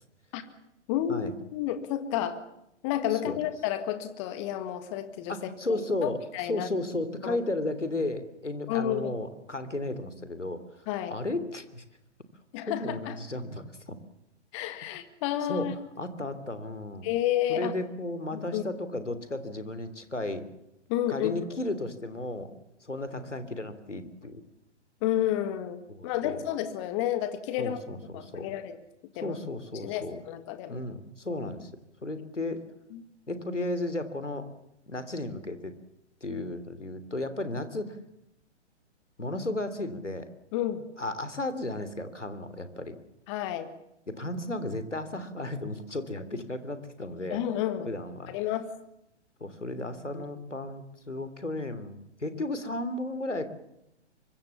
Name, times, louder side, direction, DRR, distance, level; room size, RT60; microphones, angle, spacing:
voice 1, 0.9-2.4 2.8-6.7 7.2-7.4 8.7-9.1 10.9-11.2 12.5-13.2 14.5-15.7 17.0-17.7 18.3-18.6 20.9-21.3 25.0-27.8 28.1-28.8 29.2-29.4 29.8-30.8 32.9-33.0 40.5-40.8 43.3-43.7 47.3-47.9 48.3-48.7 50.1-50.2, left 11 dB, 25° left, 10 dB, 1.8 m, -31 dB
voice 2, 5.3-10.6 11.1-11.8 12.7-14.0 15.5-15.7 16.0-17.1 17.5-20.5 21.1-22.5 22.8-24.4 25.9-26.4 27.6-28.5 29.2-30.2 30.7-31.7 32.0-32.6 33.3-34.5 34.9-35.7 36.2-38.0 39.2-40.3 41.0-43.0 44.1-47.4 47.9-48.3 49.4-53.5, left 2 dB, 85° left, 12 dB, 3.3 m, -34 dB
24.5 x 23.0 x 7.2 m, 0.83 s
figure-of-eight pair, 125°, 35 cm